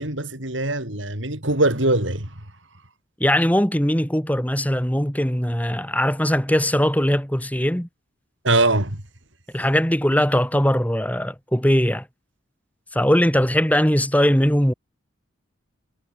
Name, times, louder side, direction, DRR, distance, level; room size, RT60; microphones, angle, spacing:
voice 1, 0.0-2.3 8.4-9.0, right 2 dB, 70° right, 6.5 m, -22 dB
voice 2, 3.2-7.9 9.5-12.0 12.9-14.7, equal, 10° left, 3.4 m, -20 dB
head